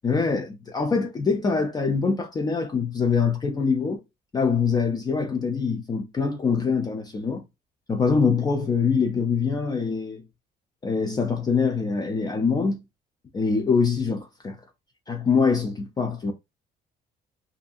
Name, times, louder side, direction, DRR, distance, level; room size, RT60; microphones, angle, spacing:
voice 1, 0.0-4.0 4.3-7.4 7.9-10.2 10.8-12.8 13.3-14.6 15.1-16.3, left 5 dB, 25° left, 0.4 m, -24 dB
2.6 x 2.4 x 2.4 m
cardioid pair, 110°, 17 cm